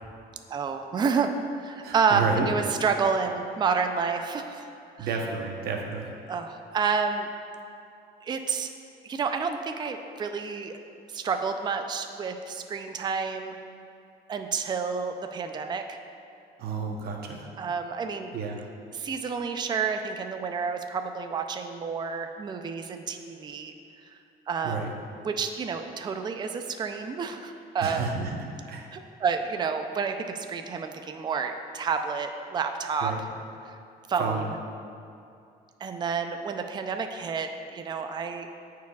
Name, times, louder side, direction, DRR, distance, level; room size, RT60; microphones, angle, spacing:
voice 1, 0.5-4.7 5.0-5.1 6.3-7.3 8.2-8.7 9.0-10.8 11.1-13.6 14.3-16.0 17.6-18.3 18.9-23.7 24.1-24.2 24.5-24.8 25.2-28.1 28.9-33.1 33.7-33.8 34.1-34.6 35.8-38.5, right 5 dB, 25° right, 6 dB, 0.4 m, -29 dB
voice 2, 1.8-2.5 5.0-6.1 16.6-17.5 18.3-18.6 24.6-24.9 27.8-28.4 28.7-28.9 33.0-33.2 34.2-34.5, right 5 dB, 65° right, 1 dB, 0.9 m, -31 dB
14.0 x 4.7 x 2.3 m, 2.5 s
cardioid pair, 110°, 17 cm